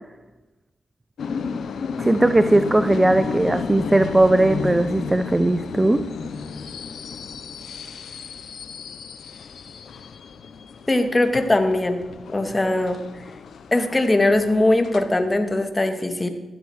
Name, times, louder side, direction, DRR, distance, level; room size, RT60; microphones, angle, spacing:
sound 1, 1.2-15.7, left 5 dB, 80° left, 1.0 m, -33 dB
voice 1, 2.0-6.0, right 2 dB, 20° right, 12 dB, 0.8 m, -18 dB
voice 2, 10.9-12.0 12.3-13.0 13.7-16.3, left 2 dB, 25° left, 7 dB, 2.3 m, -20 dB
14.5 x 12.5 x 6.5 m, 1.1 s
cardioid pair, 55°, 0 cm